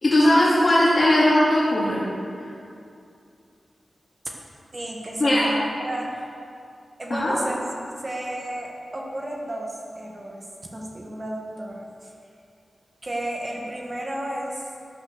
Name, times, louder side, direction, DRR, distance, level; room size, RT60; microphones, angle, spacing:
voice 1, 0.0-2.0 5.2-5.5 7.1-7.3, left 1 dB, 45° left, -8 dB, 2.7 m, -18 dB
voice 2, 4.7-6.2 7.0-7.6 8.0-10.5 10.7-12.1 13.0-14.6, right 1 dB, 35° right, -1 dB, 1.7 m, -32 dB
13.0 x 9.7 x 6.5 m, 2.5 s
wide cardioid pair, 85°, 0 cm